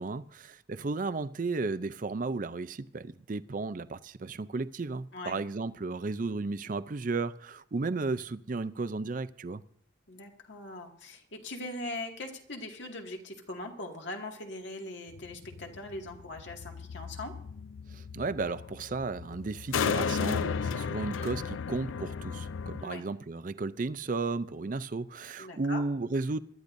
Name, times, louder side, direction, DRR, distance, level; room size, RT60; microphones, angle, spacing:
voice 1, 0.0-9.6 17.9-26.4, right 3 dB, 45° right, 0.5 m, -34 dB
voice 2, 10.1-17.3 21.2-21.3 22.8-23.0 25.4-25.8, left 2 dB, 70° left, 2.1 m, -41 dB
sound 1, 15.1-22.8, left 6 dB, 90° left, 0.4 m, -34 dB
23.0 x 12.0 x 2.6 m
head